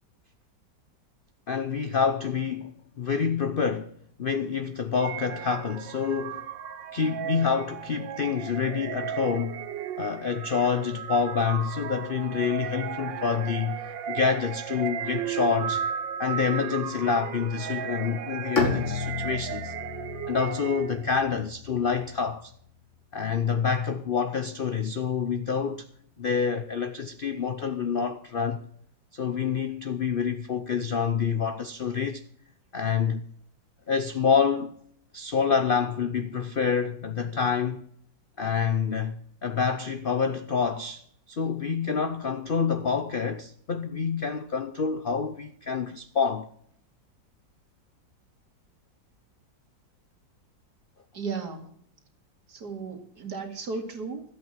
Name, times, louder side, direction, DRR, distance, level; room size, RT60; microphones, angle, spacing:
voice 1, 1.5-6.5 6.9-9.6 10.0-15.9 16.2-19.7 20.3-22.5 23.1-25.9 26.2-28.6 29.1-32.2 32.7-33.2 33.9-34.7 35.1-37.9 38.4-46.5, left 6 dB, 65° left, 0.5 m, -27 dB
sound 1, 5.0-21.2, right 9 dB, 90° right, 1.6 m, -35 dB
Bowed string instrument, 18.6-22.5, left 4 dB, 40° left, 2.2 m, -33 dB
voice 2, 51.1-51.7 52.5-54.2, right 4 dB, 60° right, 2.6 m, -35 dB
13.0 x 8.5 x 7.4 m
omnidirectional pair, 2.0 m